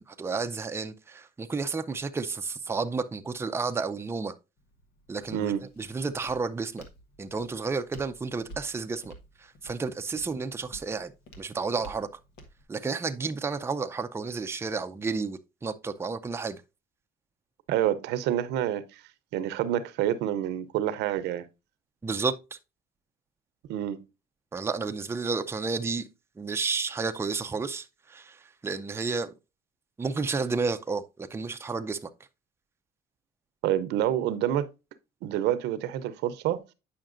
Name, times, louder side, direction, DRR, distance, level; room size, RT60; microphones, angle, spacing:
voice 1, 0.0-4.3 5.1-6.8 7.2-9.1 9.4-11.1 11.4-12.1 12.7-16.6 22.0-22.6 24.5-26.1 26.4-29.3 30.0-32.1, right 4 dB, 15° right, 0.5 m, -31 dB
Walk footsteps, 4.6-12.6, equal, 85° left, 1.4 m, -52 dB
voice 2, 17.7-19.0 19.3-21.4 23.7-24.0 33.6-34.7 35.2-36.6, right 11 dB, 85° right, 0.7 m, -27 dB
8.7 x 5.7 x 2.5 m
cardioid pair, 110°, 17 cm